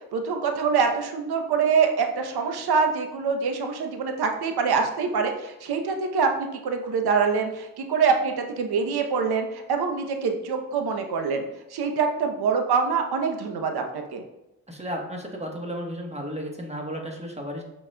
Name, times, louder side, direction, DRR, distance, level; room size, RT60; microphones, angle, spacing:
voice 1, 0.1-6.3 6.6-11.4 11.7-14.2, right 5 dB, 75° right, 5 dB, 0.8 m, -25 dB
voice 2, 14.7-17.6, equal, 15° right, 1 dB, 1.1 m, -33 dB
5.8 x 4.0 x 2.2 m, 0.92 s
supercardioid pair, 45°, 39 cm